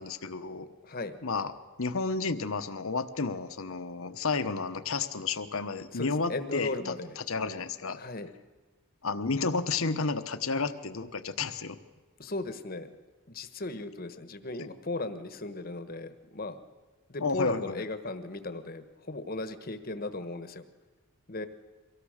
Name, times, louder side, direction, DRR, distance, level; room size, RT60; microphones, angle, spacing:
voice 1, 0.0-0.7 1.2-1.5 1.8-8.0 9.0-11.8 14.6-14.7 17.2-17.8, left 4 dB, 70° left, 10 dB, 1.1 m, -32 dB
voice 2, 0.8-1.2 5.9-7.2 8.0-8.3 12.2-12.9 13.3-16.6 17.1-20.6 21.3-21.5, left 2 dB, 40° left, 10 dB, 1.2 m, -36 dB
24.0 x 16.5 x 6.6 m, 1.3 s
head